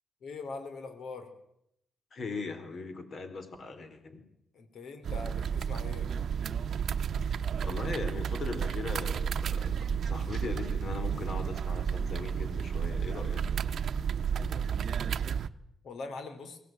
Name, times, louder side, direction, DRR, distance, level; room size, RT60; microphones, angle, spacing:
voice 1, 0.2-1.3 4.5-6.1 15.8-16.6, left 3 dB, 75° left, 8 dB, 3.7 m, -42 dB
voice 2, 2.1-4.2 7.6-13.4, left 4 dB, 50° left, 8 dB, 4.1 m, -39 dB
sound 1, 5.0-15.5, right 7 dB, 60° right, 0.9 m, -32 dB
23.0 x 18.0 x 9.2 m, 0.80 s
cardioid pair, 135°, 0 cm